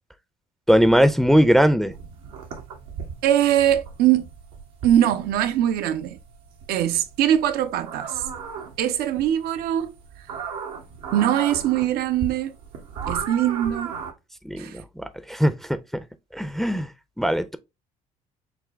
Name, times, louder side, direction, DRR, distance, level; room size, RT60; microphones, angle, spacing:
voice 1, 0.7-1.9 14.4-15.8 16.3-16.9 17.2-17.6, equal, ahead, 0.5 m, -20 dB
sound 1, 1.9-14.1, right 6 dB, 85° right, 1.0 m, -37 dB
voice 2, 3.2-4.3 4.8-6.2 6.7-8.2 8.8-9.9 11.1-12.5 13.1-13.9 14.6-14.8, right 11 dB, 70° right, 0.6 m, -22 dB
6.0 x 2.2 x 3.3 m
hypercardioid pair, 60°, 17 cm